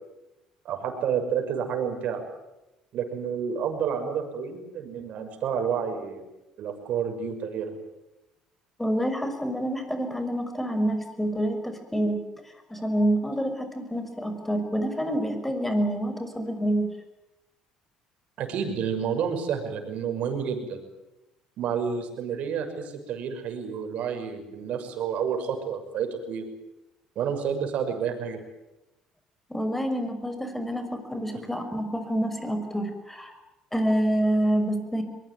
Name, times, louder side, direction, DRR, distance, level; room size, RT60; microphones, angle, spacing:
voice 1, 0.6-2.2 2.9-6.2 6.6-7.8 18.4-20.8 21.6-26.4 27.2-28.4, right 7 dB, 60° right, 5 dB, 6.0 m, -29 dB
voice 2, 8.8-12.2 12.7-16.9 29.5-33.3 33.7-35.0, right 1 dB, 5° left, 7 dB, 6.1 m, -27 dB
23.0 x 21.5 x 9.5 m, 0.96 s
hypercardioid pair, 70°, 3 cm